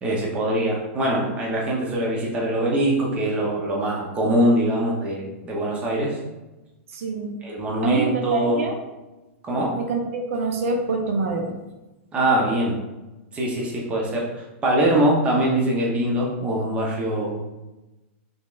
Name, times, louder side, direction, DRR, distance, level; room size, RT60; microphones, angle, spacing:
voice 1, 0.0-6.2 7.4-8.6 9.4-9.8 12.1-12.8 13.3-17.4, right 1 dB, 15° right, -2 dB, 0.7 m, -23 dB
voice 2, 6.9-7.3 7.8-8.7 9.8-11.6, right 3 dB, 75° right, 3 dB, 0.6 m, -25 dB
3.9 x 3.4 x 2.4 m, 1.1 s
supercardioid pair, 160°, 7 cm